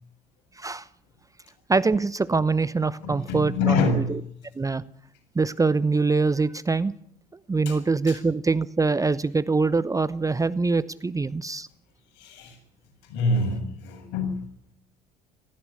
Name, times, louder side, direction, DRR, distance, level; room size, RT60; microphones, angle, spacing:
voice 1, 0.6-0.9 1.7-3.8 4.6-4.8 5.3-6.9 7.5-11.7, right 4 dB, 15° right, 16 dB, 0.8 m, -24 dB
voice 2, 3.0-4.2 7.7-7.8 8.1-8.2 12.1-12.6 13.0-14.5, left 3 dB, 60° left, 3 dB, 7.5 m, -26 dB
18.5 x 15.5 x 9.8 m, 0.68 s
hypercardioid pair, 65°, 21 cm